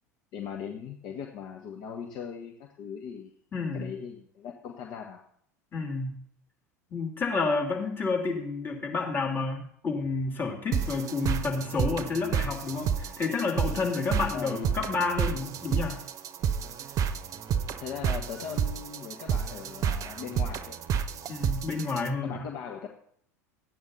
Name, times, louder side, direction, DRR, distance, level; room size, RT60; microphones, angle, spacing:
voice 1, 0.3-3.3 3.7-5.2 14.3-14.8 17.8-20.8 21.2-21.3 22.2-22.9, left 7 dB, 50° left, 2 dB, 1.4 m, -39 dB
voice 2, 3.5-3.9 5.7-6.2 6.9-16.0 21.3-22.5, left 4 dB, 25° left, 0 dB, 3.3 m, -30 dB
sound 1, 10.7-22.1, right 7 dB, 40° right, 0.8 m, -30 dB
14.0 x 9.4 x 4.2 m, 0.64 s
figure-of-eight pair, 80°, 9 cm